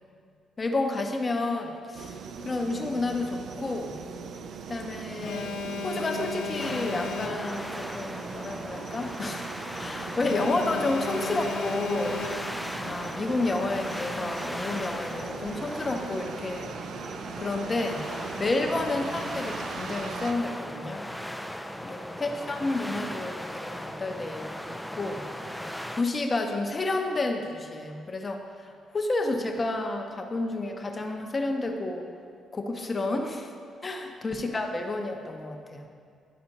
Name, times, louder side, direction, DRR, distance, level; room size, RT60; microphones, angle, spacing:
voice 1, 0.6-2.2 2.4-4.0 4.7-5.5 5.8-9.5 9.8-12.2 12.7-16.7 17.4-18.0 18.4-21.0 21.8-24.5 24.9-25.3 25.9-32.0 32.5-33.5 33.8-35.9, left 2 dB, 30° left, 3 dB, 0.7 m, -30 dB
sound 1, 1.9-20.3, right 5 dB, 65° right, 0.4 m, -40 dB
Alarm, 5.2-7.8 10.2-12.8, left 5 dB, 85° left, 0.4 m, -35 dB
sound 2, 6.6-26.0, equal, ahead, 0.4 m, -38 dB
11.0 x 4.2 x 2.8 m, 2.3 s
cardioid pair, 90°, 0 cm